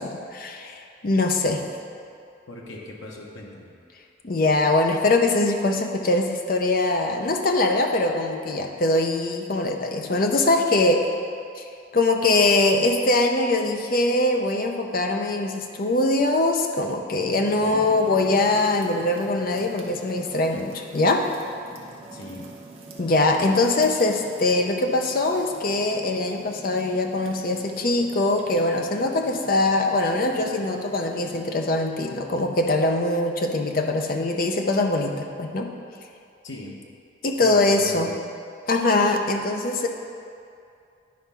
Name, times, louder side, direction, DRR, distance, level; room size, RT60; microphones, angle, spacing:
voice 1, 0.0-1.6 4.2-11.1 11.6-21.3 23.0-35.7 37.2-38.1 38.7-39.9, left 2 dB, 45° left, 3 dB, 0.6 m, -22 dB
voice 2, 2.5-3.7 17.5-17.9 22.1-22.5 36.4-36.8 37.4-38.1, left 2 dB, 85° left, -1 dB, 1.0 m, -39 dB
sound 1, 17.4-31.4, right 2 dB, 30° right, 0.8 m, -45 dB
9.4 x 3.5 x 5.6 m, 2.4 s
head